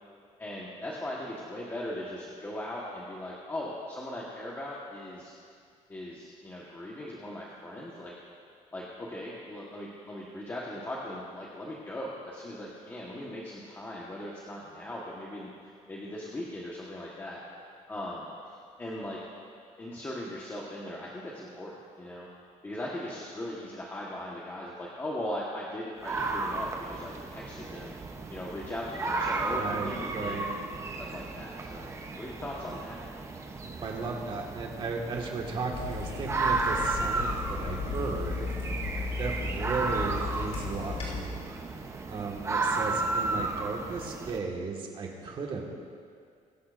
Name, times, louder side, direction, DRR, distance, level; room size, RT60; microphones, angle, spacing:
voice 1, 0.4-5.3 5.9-8.1 8.7-17.4 17.9-19.2 19.8-22.3 22.6-27.9 28.3-30.4 31.0-31.9 32.2-33.1, left 1 dB, 15° left, -5 dB, 1.3 m, -39 dB
sound 1, 26.0-44.4, right 3 dB, 20° right, 0.7 m, -34 dB
voice 2, 29.5-30.5 33.8-38.5 39.2-41.5 42.1-45.7, right 4 dB, 40° right, 0 dB, 1.7 m, -35 dB
Water tap faucet / Sink (filling or washing), 35.7-41.2, left 4 dB, 55° left, 3.6 m, -35 dB
23.0 x 11.5 x 2.5 m, 2.2 s
cardioid pair, 175°, 13 cm